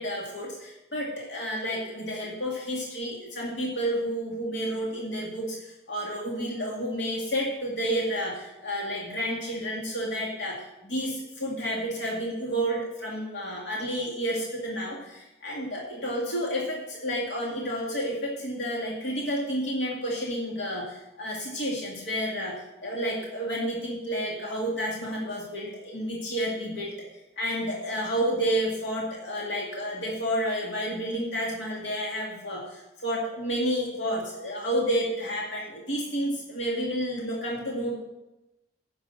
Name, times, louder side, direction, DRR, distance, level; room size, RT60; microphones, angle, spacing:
voice 1, 0.0-26.9 27.4-38.0, equal, 85° left, -2 dB, 2.2 m, -30 dB
10.0 x 6.8 x 7.1 m, 0.96 s
head